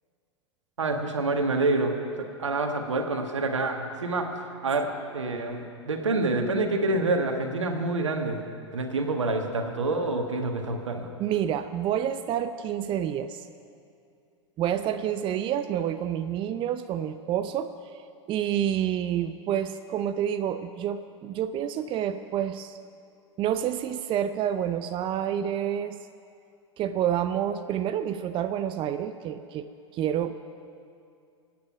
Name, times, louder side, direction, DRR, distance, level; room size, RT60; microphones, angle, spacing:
voice 1, 0.8-4.3 4.6-8.4 8.7-11.1, right 2 dB, 80° right, 4 dB, 1.7 m, -27 dB
voice 2, 11.2-13.5 14.6-18.0 18.3-22.8 23.4-26.0 26.8-30.4, right 10 dB, 35° right, 10 dB, 0.6 m, -28 dB
23.5 x 9.4 x 5.8 m, 2.5 s
hypercardioid pair, 95°, 15 cm